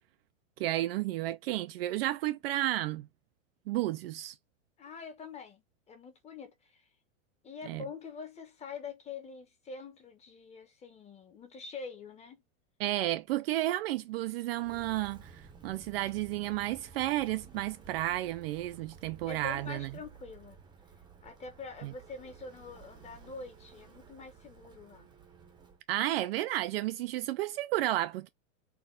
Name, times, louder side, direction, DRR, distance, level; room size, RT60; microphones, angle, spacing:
voice 1, 0.6-3.1 3.7-4.3 7.7-7.8 12.8-19.9 21.8-21.9 25.9-28.3, right 15 dB, 50° right, 0.5 m, -32 dB
voice 2, 4.8-6.8 7.4-12.4 19.2-20.6 21.2-25.1, left 4 dB, 15° left, 1.0 m, -45 dB
Walk footsteps, 14.5-25.8, right 6 dB, 10° right, 0.8 m, -54 dB
4.3 x 2.4 x 3.7 m
supercardioid pair, 140°, 40 cm